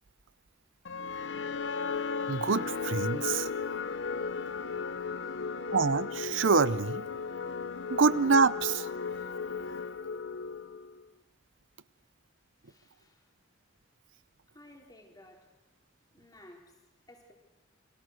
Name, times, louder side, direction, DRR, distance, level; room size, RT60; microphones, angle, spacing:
sound 1, 0.8-11.0, left 5 dB, 75° left, 0.9 m, -35 dB
voice 1, 2.3-3.5 5.7-7.1 7.9-8.9, right 4 dB, 85° right, 0.8 m, -26 dB
voice 2, 5.2-5.5 12.6-13.3 14.5-15.6 16.1-17.3, left 1 dB, 20° left, 3.8 m, -56 dB
30.0 x 24.0 x 6.5 m
head